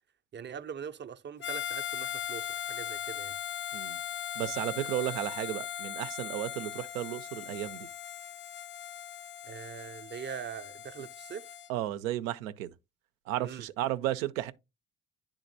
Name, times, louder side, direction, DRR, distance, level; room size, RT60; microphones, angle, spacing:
voice 1, 0.3-3.3 9.4-11.5 13.4-13.7, right 7 dB, 30° right, 0.5 m, -42 dB
Harmonica, 1.4-11.7, left 11 dB, 30° left, 0.4 m, -39 dB
voice 2, 4.4-7.9 11.7-12.7 13.3-14.5, right 13 dB, 90° right, 0.5 m, -33 dB
10.0 x 3.7 x 2.6 m
hypercardioid pair, 60°, 39 cm